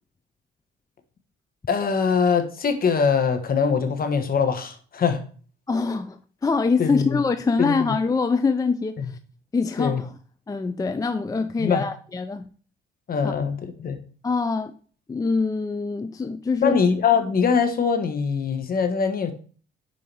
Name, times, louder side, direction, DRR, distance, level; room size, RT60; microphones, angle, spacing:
voice 1, 1.7-5.2 6.8-7.2 7.6-8.0 9.0-9.1 9.8-10.0 11.6-11.8 13.1-14.0 16.6-19.3, left 6 dB, 50° left, 1.2 m, -22 dB
voice 2, 5.7-9.2 9.5-10.1 10.5-12.5 13.2-13.3 14.2-14.8 15.1-16.7, left 4 dB, 20° left, 0.4 m, -24 dB
5.4 x 4.8 x 4.4 m
cardioid pair, 90°, 20 cm